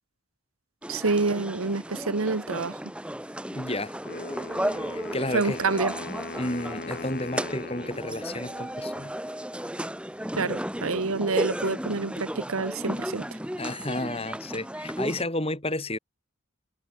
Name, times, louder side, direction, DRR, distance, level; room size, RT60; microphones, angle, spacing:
sound 1, 0.8-15.2, equal, 5° right, 4.0 m, -34 dB
voice 1, 0.9-2.8 5.3-5.9 10.4-13.3, right 4 dB, 90° right, 1.2 m, -27 dB
voice 2, 3.5-4.0 4.8-5.6 6.4-9.1 13.6-16.0, left 1 dB, 30° left, 5.8 m, -32 dB
Wind instrument woodwind instrument, 4.0-9.0, left 2 dB, 45° left, 2.0 m, -40 dB
head